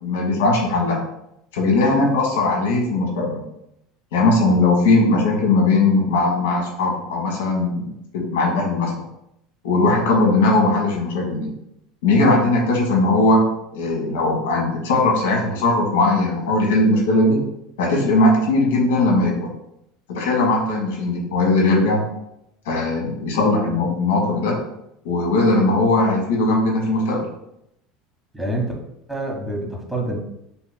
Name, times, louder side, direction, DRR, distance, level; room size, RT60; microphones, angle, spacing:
voice 1, 0.0-1.0 1.5-3.4 4.1-9.0 9.6-11.5 12.0-17.4 17.8-19.5 20.1-22.0 22.6-24.6 25.0-27.3, left 2 dB, 75° left, 0 dB, 1.3 m, -19 dB
voice 2, 28.3-28.7 29.1-30.2, right 1 dB, 5° right, -1 dB, 1.3 m, -26 dB
5.5 x 3.0 x 2.2 m, 0.80 s
hypercardioid pair, 80°, 0 cm